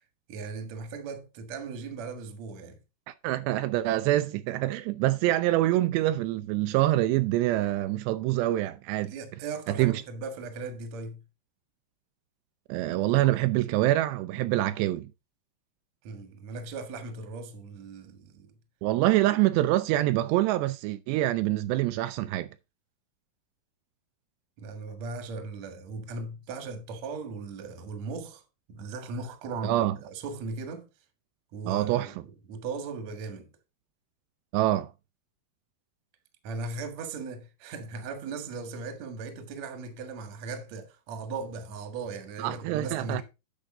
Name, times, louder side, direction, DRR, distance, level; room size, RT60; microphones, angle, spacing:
voice 1, 0.3-2.8 9.1-11.2 16.0-18.5 24.6-28.4 28.7-30.9 31.5-32.2 32.5-33.5 36.4-43.2, right 4 dB, 55° right, 2.3 m, -38 dB
voice 2, 3.1-9.1 9.8-10.0 12.7-15.1 18.8-22.5 29.6-30.0 31.7-32.1 34.5-34.9 42.4-43.2, right 15 dB, 85° right, 2.7 m, -25 dB
10.0 x 6.9 x 3.7 m
omnidirectional pair, 4.9 m